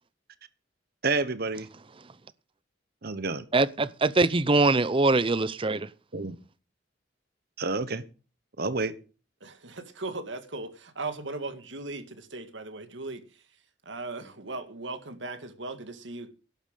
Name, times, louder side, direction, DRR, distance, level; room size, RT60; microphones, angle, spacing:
voice 1, 1.0-1.7 3.0-3.5 6.1-6.4 7.6-8.0 8.6-8.9, right 3 dB, 55° right, 1.2 m, -29 dB
voice 2, 3.5-5.9, right 3 dB, 30° right, 0.6 m, -23 dB
voice 3, 9.4-13.4 13.9-16.3, right 2 dB, 70° right, 2.0 m, -38 dB
11.5 x 8.9 x 6.6 m
head